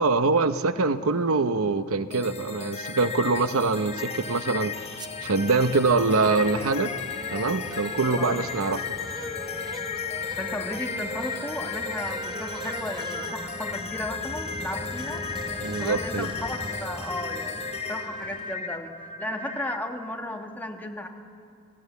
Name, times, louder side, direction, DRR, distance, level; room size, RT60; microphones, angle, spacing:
voice 1, 0.0-7.0 7.3-8.8 15.6-16.3, right 3 dB, 70° right, 11 dB, 0.8 m, -24 dB
sound 1, 2.1-19.8, left 5 dB, 30° left, 1.1 m, -35 dB
sound 2, 4.0-18.5, right 1 dB, 20° right, 0.7 m, -40 dB
voice 2, 8.2-8.5 10.4-21.1, left 1 dB, 10° left, 2 dB, 1.5 m, -35 dB
29.5 x 17.5 x 8.2 m, 2.4 s
head